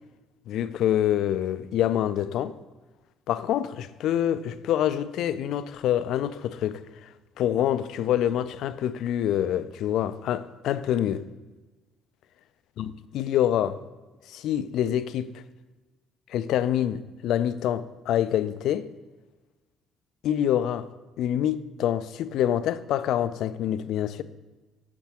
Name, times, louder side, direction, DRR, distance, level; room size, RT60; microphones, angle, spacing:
voice 1, 0.5-2.5 3.3-7.1 7.4-11.2 12.8-13.8 14.3-15.3 16.3-18.9 20.2-20.9 21.2-24.2, left 11 dB, 65° left, 0.3 m, -26 dB
8.2 x 6.0 x 2.9 m
hypercardioid pair, 50°, 0 cm